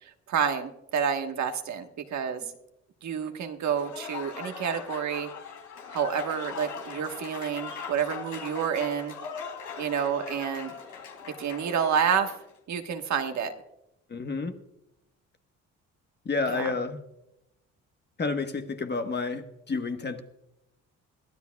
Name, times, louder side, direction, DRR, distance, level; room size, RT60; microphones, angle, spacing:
voice 1, 0.3-2.4 3.0-5.3 5.9-9.1 9.8-10.7 11.4-12.3 12.7-13.5 16.5-16.7, right 7 dB, 65° right, 1.4 m, -29 dB
Applause / Crowd, 3.6-12.5, left 6 dB, 80° left, 3.1 m, -40 dB
voice 2, 14.1-14.5 16.2-17.0 18.2-20.2, left 4 dB, 35° left, 1.3 m, -30 dB
22.0 x 14.0 x 2.3 m
cardioid pair, 90°, 30 cm